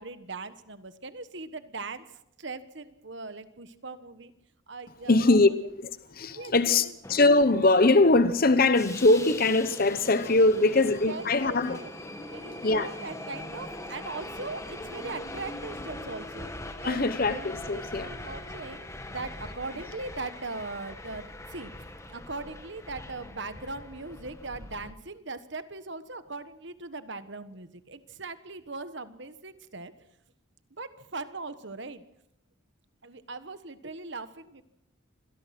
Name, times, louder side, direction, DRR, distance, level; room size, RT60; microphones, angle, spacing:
voice 1, 0.0-4.3 4.7-5.5 6.3-6.9 10.7-11.9 12.3-16.5 16.8-21.7 22.1-30.1 30.8-32.0 33.0-34.6, right 3 dB, 55° right, 1.3 m, -40 dB
voice 2, 5.1-5.5 5.8-11.8 12.6-12.9 16.8-18.1, left 2 dB, 45° left, 0.8 m, -22 dB
Subway metro underground, 7.0-24.9, left 1 dB, 15° left, 1.5 m, -42 dB
25.5 x 17.5 x 6.0 m
head